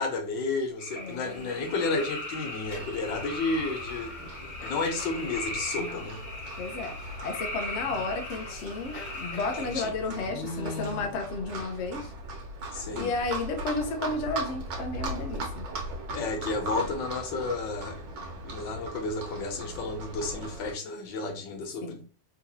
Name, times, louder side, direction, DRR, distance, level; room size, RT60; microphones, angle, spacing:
voice 1, 0.0-6.2 9.6-11.1 12.7-13.1 16.1-22.0, left 3 dB, 85° left, 1.5 m, -32 dB
sound 1, 0.8-9.9, left 1 dB, 30° left, 1.1 m, -38 dB
voice 2, 1.0-1.7 5.8-6.1 6.6-12.1 12.9-15.6 21.8-22.0, left 3 dB, 50° left, 0.9 m, -33 dB
Livestock farm animals working animals, 2.6-20.7, right 2 dB, 80° right, 1.6 m, -39 dB
3.8 x 2.8 x 2.7 m
omnidirectional pair, 1.9 m